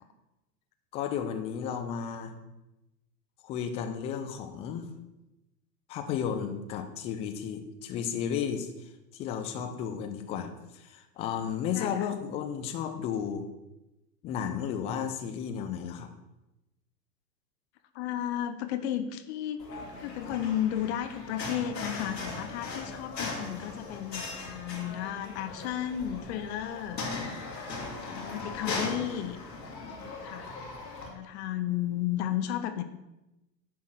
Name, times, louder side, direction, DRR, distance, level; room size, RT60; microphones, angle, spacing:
voice 1, 0.9-2.3 3.4-4.9 5.9-13.4 14.2-16.1, left 8 dB, 15° left, 6 dB, 0.3 m, -33 dB
voice 2, 11.7-12.1 17.9-27.0 28.0-29.4 30.2-30.5 31.1-32.8, left 11 dB, 45° left, 9 dB, 0.7 m, -33 dB
sound 1, 19.6-31.1, left 3 dB, 80° left, 2.0 m, -39 dB
10.0 x 3.7 x 6.2 m, 0.97 s
figure-of-eight pair, 90°, 49 cm